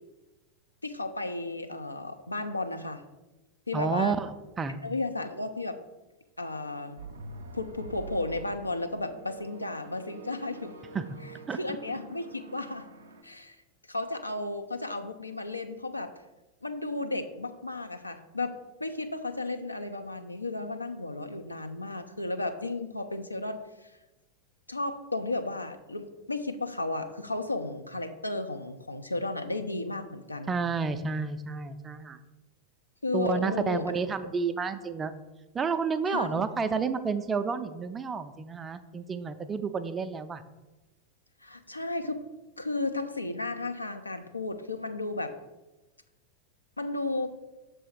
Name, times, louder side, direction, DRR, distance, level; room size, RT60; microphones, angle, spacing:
voice 1, 0.8-3.0 3.7-4.2 4.8-5.8 6.4-7.0 7.5-10.7 11.5-12.9 13.2-13.6 13.9-16.1 16.6-23.6 24.7-30.5 33.0-33.9 34.2-34.3 36.1-36.6 41.4-42.2 42.6-45.3 46.8-47.3, left 2 dB, 85° left, 7 dB, 0.4 m, -34 dB
voice 2, 3.7-4.8 10.9-11.1 11.5-11.6 30.5-32.2 33.1-35.1 35.5-40.4, right 5 dB, 20° right, 10 dB, 0.4 m, -30 dB
sound 1, 7.0-13.2, right 4 dB, 70° right, 0.5 m, -46 dB
6.1 x 3.3 x 4.7 m, 1.1 s
figure-of-eight pair, 90°, 0 cm